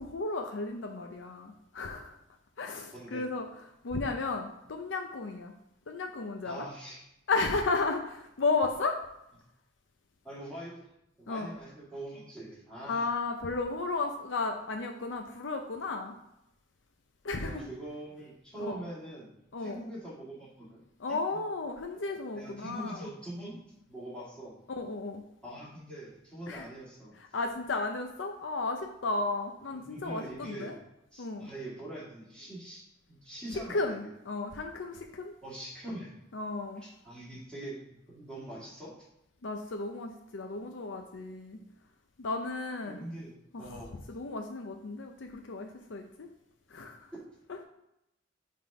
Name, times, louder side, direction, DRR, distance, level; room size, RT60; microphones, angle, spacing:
voice 1, 0.0-2.2 2.6-5.5 5.9-6.7 7.3-9.0 11.3-11.5 12.9-16.2 17.2-17.7 18.6-18.7 19.5-19.9 21.0-23.1 24.7-25.2 26.5-26.7 27.1-30.8 31.2-31.5 33.7-35.3 36.3-36.8 39.4-41.6 42.2-43.1 43.5-46.3 46.7-47.1 47.5-47.6, left 3 dB, 85° left, 4 dB, 0.6 m, -34 dB
voice 2, 2.9-3.2 6.4-7.0 10.2-10.9 11.2-13.0 17.4-19.3 19.6-20.8 21.1-21.2 22.3-24.6 25.4-27.1 29.7-30.8 31.1-32.8 33.1-34.1 35.4-36.3 36.6-38.9 42.9-43.3 43.6-44.0 47.1-47.2, right 1 dB, 5° left, -8 dB, 2.4 m, -43 dB
5.7 x 3.7 x 4.8 m, 0.84 s
head